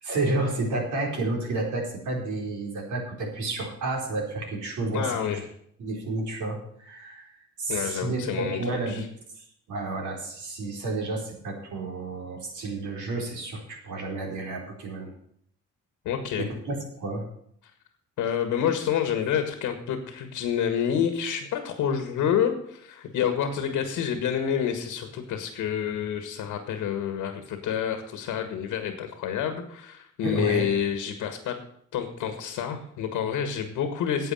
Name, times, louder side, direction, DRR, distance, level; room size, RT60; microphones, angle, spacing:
voice 1, 0.0-5.4 5.8-7.3 7.6-9.0 9.4-15.1 16.4-16.7 17.0-17.2 30.2-30.7, right 2 dB, 75° right, 0 dB, 4.5 m, -31 dB
voice 2, 4.9-5.4 7.7-8.6 8.9-9.0 16.0-16.4 18.2-31.6 31.9-34.3, left 8 dB, 90° left, 7 dB, 1.7 m, -28 dB
9.8 x 7.9 x 7.7 m, 0.68 s
cardioid pair, 90°, 30 cm